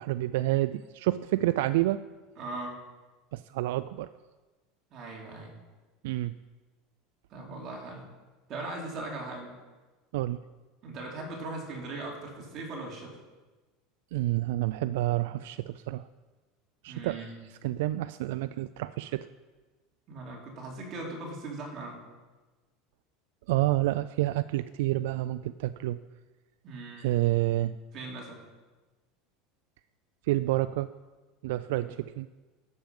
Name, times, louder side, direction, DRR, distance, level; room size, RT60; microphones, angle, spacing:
voice 1, 0.0-2.1 3.3-4.1 6.0-6.3 10.1-10.4 14.1-16.0 16.8-17.2 17.6-19.3 23.5-26.0 27.0-27.8 30.3-30.9 31.4-32.3, right 16 dB, 80° right, 14 dB, 0.3 m, -28 dB
voice 2, 2.4-2.8 4.9-5.6 7.3-8.0 8.5-9.5 10.8-13.1 16.9-17.3 20.1-22.0 26.6-27.1 27.9-28.4 31.7-31.8, right 2 dB, 35° right, -2 dB, 3.1 m, -39 dB
12.0 x 7.7 x 5.3 m, 1.2 s
supercardioid pair, 150°, 0 cm